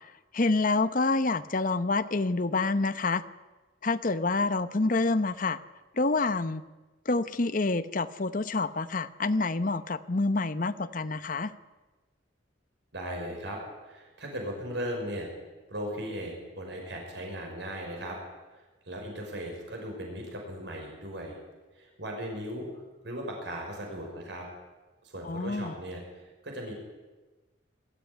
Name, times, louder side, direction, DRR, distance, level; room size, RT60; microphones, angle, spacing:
voice 1, 0.3-3.2 3.8-5.6 6.0-6.6 7.1-11.5 25.3-25.7, left 3 dB, 45° left, 12 dB, 0.8 m, -27 dB
voice 2, 12.9-15.3 15.7-18.2 18.5-21.3 21.7-24.5 25.0-26.7, equal, 65° right, 1 dB, 5.6 m, -38 dB
21.5 x 14.0 x 9.8 m, 1.2 s
head